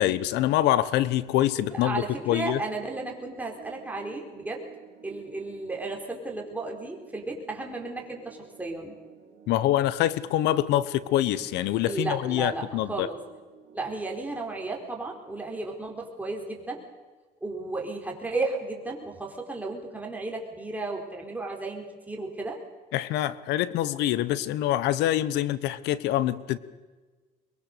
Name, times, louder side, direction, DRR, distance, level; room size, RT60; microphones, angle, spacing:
voice 1, 0.0-2.6 9.5-13.1 22.9-26.6, left 13 dB, 85° left, 17 dB, 1.1 m, -25 dB
voice 2, 1.6-4.6 5.0-8.9 11.7-13.2 13.7-16.8 17.4-22.6, right 3 dB, 10° right, 0 dB, 4.5 m, -34 dB
sound 1, 2.3-16.6, right 7 dB, 80° right, 4.7 m, -53 dB
23.0 x 22.0 x 6.8 m, 1.3 s
cardioid pair, 110°, 17 cm